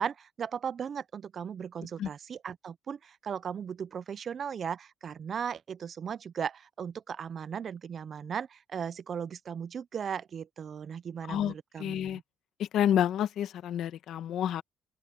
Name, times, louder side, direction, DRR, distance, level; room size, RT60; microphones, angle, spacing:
voice 1, 0.0-12.2, right 7 dB, 45° right, 0.4 m, -37 dB
voice 2, 11.3-12.2 12.6-14.6, left 10 dB, 70° left, 1.1 m, -29 dB
open air
cardioid pair, 135°, 0 cm